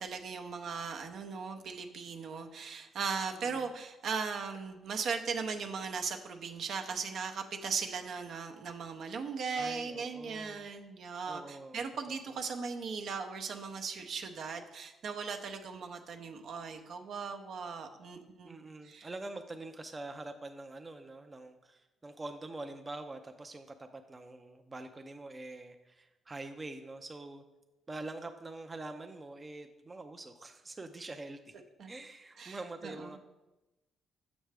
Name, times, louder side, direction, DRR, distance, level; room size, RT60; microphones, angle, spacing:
voice 1, 0.0-18.6 18.8-19.1 31.8-31.9 32.4-32.6 32.8-33.1, right 5 dB, 65° right, 4 dB, 0.7 m, -38 dB
voice 2, 3.3-3.7 9.5-10.7 11.3-12.4 18.4-27.4 27.9-33.2, right 2 dB, 25° right, 6 dB, 0.5 m, -45 dB
6.5 x 6.0 x 3.4 m, 1.0 s
cardioid pair, 90°, 0 cm